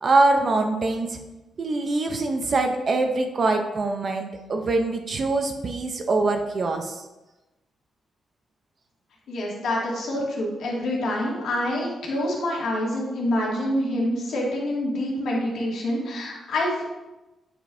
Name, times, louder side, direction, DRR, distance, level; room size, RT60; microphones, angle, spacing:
voice 1, 0.0-1.2 1.6-7.0, right 3 dB, 35° right, 5 dB, 0.5 m, -23 dB
voice 2, 9.3-16.8, left 1 dB, 75° left, -4 dB, 2.0 m, -26 dB
8.9 x 5.0 x 2.6 m, 1.0 s
wide cardioid pair, 165°, 0 cm